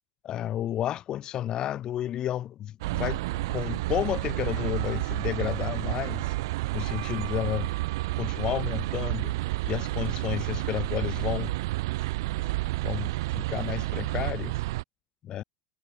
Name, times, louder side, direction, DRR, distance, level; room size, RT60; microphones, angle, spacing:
voice 1, 0.2-6.3 6.7-7.7 8.2-9.4 9.6-11.5 12.8-14.6 15.2-15.4, left 11 dB, 35° left, 2.5 m, -32 dB
sound 1, 2.8-14.8, right 20 dB, 75° right, 0.6 m, -30 dB
supercardioid pair, 130°, 2 cm